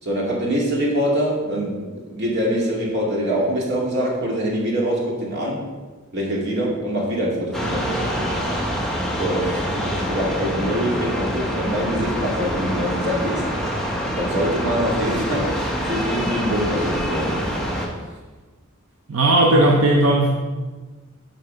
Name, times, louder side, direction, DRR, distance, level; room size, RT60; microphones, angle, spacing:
voice 1, 0.0-5.6 6.1-8.1 9.2-13.4 14.1-17.4, equal, 55° right, -3 dB, 2.3 m, -24 dB
sound 1, 7.5-17.9, equal, ahead, 1.1 m, -25 dB
voice 2, 19.1-20.3, right 1 dB, 75° right, 0 dB, 0.8 m, -16 dB
8.0 x 4.6 x 6.5 m, 1.3 s
head